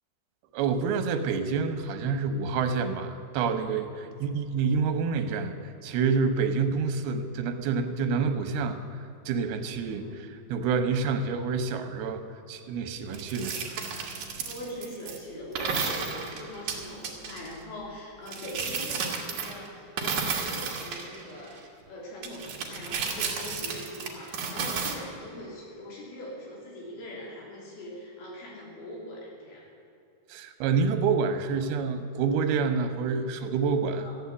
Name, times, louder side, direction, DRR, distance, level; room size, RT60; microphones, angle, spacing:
voice 1, 0.5-8.8 9.3-12.2 12.5-14.0 30.3-34.1, right 5 dB, 85° right, 8 dB, 3.0 m, -28 dB
voice 2, 10.0-10.3 14.4-29.7 34.0-34.2, left 1 dB, 80° left, -4 dB, 5.3 m, -41 dB
sound 1, 13.1-15.2 15.5-17.5 18.3-19.7 20.0-21.6 22.2-24.9, right 5 dB, 55° right, 2.7 m, -33 dB
14.0 x 9.5 x 8.3 m, 2.7 s
omnidirectional pair, 4.4 m